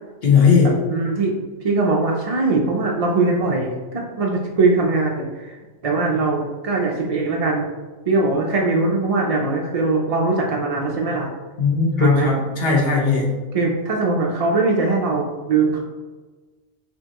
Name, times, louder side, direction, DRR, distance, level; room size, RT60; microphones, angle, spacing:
voice 1, 0.2-0.7 11.6-13.3, left 5 dB, 55° left, -3 dB, 1.3 m, -17 dB
voice 2, 0.9-1.3 1.6-7.7 8.1-11.3 12.0-12.3 13.5-15.8, right 3 dB, 55° right, -1 dB, 0.4 m, -21 dB
5.5 x 2.9 x 2.9 m, 1.3 s
omnidirectional pair, 1.3 m